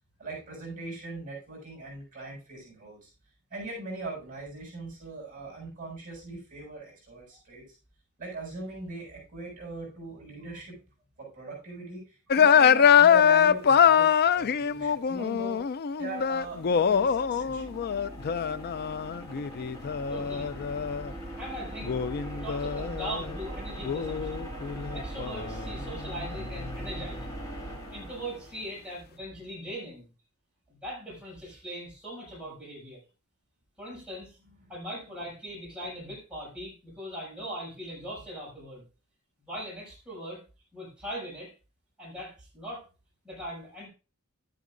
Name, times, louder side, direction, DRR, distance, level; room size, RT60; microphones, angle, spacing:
voice 1, 0.2-3.1 3.5-7.8 8.2-10.8 11.2-15.7 16.0-17.7, right 3 dB, 40° right, -3 dB, 7.2 m, -40 dB
sound 1, 12.3-21.1 21.8-23.4 23.8-26.7, left 7 dB, 45° left, 0.4 m, -24 dB
sound 2, 16.0-29.0, right 1 dB, 15° left, 2.8 m, -40 dB
voice 2, 20.1-20.5 21.4-22.0 22.3-24.5 24.8-27.4 27.9-30.1 30.7-33.0 33.8-34.4 34.7-38.8 39.4-40.4 40.7-41.5 42.0-42.8 43.2-43.9, equal, 5° right, -7 dB, 6.5 m, -40 dB
13.0 x 10.5 x 2.6 m, 0.32 s
head